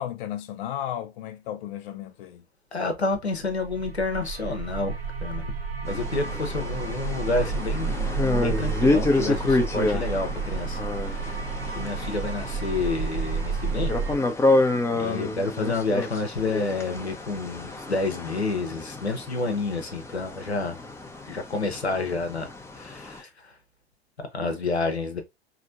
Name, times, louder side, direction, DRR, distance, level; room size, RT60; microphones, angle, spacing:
voice 1, 0.0-2.4 15.1-15.4, left 11 dB, 55° left, 0.5 m, -34 dB
voice 2, 2.7-5.5 5.8-11.4 11.8-13.9 15.0-20.7 21.2-22.5 22.8-23.3 24.3-25.2, left 3 dB, 85° left, 0.9 m, -29 dB
sound 1, 3.5-14.2, right 5 dB, 70° right, 1.0 m, -31 dB
sound 2, 5.9-23.2, left 2 dB, 10° left, 0.6 m, -29 dB
4.2 x 2.9 x 2.5 m
figure-of-eight pair, 80°, 31 cm